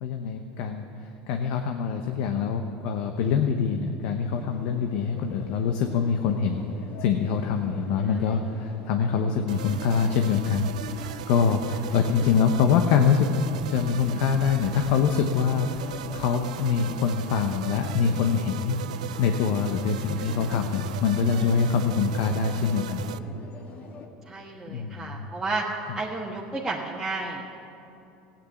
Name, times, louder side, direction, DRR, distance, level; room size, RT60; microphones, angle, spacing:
voice 1, 0.0-6.6 7.0-13.3 13.7-18.8 19.2-23.1 24.7-25.3, left 6 dB, 70° left, 5 dB, 0.9 m, -25 dB
sound 1, 4.3-24.1, left 4 dB, 50° left, 1.8 m, -44 dB
sound 2, 9.5-23.2, right 11 dB, 90° right, 0.4 m, -38 dB
voice 2, 20.1-20.5 24.3-25.6 25.9-27.5, right 3 dB, 15° right, -4 dB, 1.5 m, -32 dB
15.0 x 8.9 x 8.5 m, 2.8 s
hypercardioid pair, 95°, 4 cm